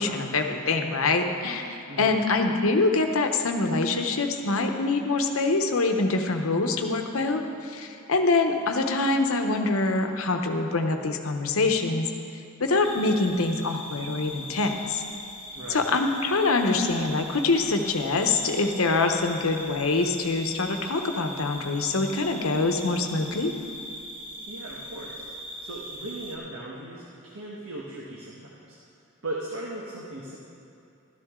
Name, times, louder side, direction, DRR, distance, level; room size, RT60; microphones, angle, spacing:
voice 1, 0.0-12.1 12.6-15.0 15.7-23.5, left 3 dB, 85° left, 5 dB, 0.9 m, -25 dB
voice 2, 1.9-2.3 15.5-15.9 24.5-25.3 25.6-28.8 29.2-30.4, right 2 dB, 85° right, -4 dB, 1.2 m, -38 dB
sound 1, 12.8-26.4, equal, 25° right, 1.3 m, -40 dB
13.0 x 12.5 x 3.7 m, 2.7 s
head